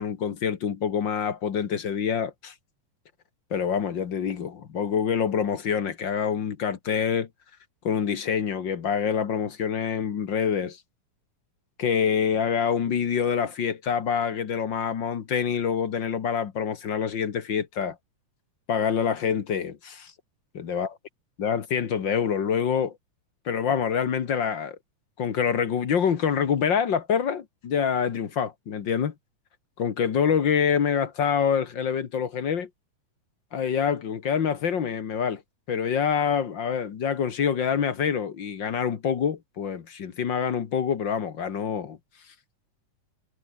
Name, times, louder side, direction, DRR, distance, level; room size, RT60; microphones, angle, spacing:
voice 1, 0.0-2.5 3.5-7.3 7.8-10.8 11.8-18.0 18.7-20.1 20.5-20.9 21.4-23.0 23.4-24.8 25.2-29.1 29.8-32.7 33.5-35.4 35.7-42.0, left 7 dB, 50° left, 1.5 m, -26 dB
omnidirectional pair, 4.0 m